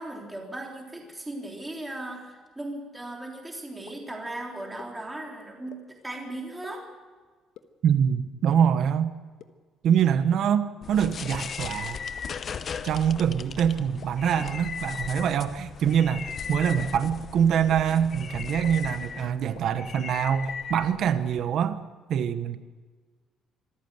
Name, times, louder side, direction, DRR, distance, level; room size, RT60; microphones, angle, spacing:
voice 1, 0.0-6.9, right 1 dB, 10° right, 0 dB, 3.5 m, -37 dB
sound 1, 3.9-4.0 4.8-4.9 5.7-5.8 6.6-6.7 7.6-7.7 8.5-8.6 9.4-9.5 10.3-10.4 11.2-11.3 12.2-12.3 13.1-13.2 14.0-14.1 14.9-15.0 15.9-16.0 16.8-16.9 17.7-17.8 18.6-18.7 19.6-19.7 20.5-20.6, left 12 dB, 75° left, 1.3 m, -45 dB
voice 2, 7.8-9.1 9.8-12.0 12.8-21.8 22.1-22.6, right 8 dB, 55° right, 11 dB, 1.0 m, -24 dB
sound 2, 10.8-21.4, left 6 dB, 35° left, 0.8 m, -37 dB
25.5 x 14.5 x 7.9 m, 1.4 s
cardioid pair, 155°, 0 cm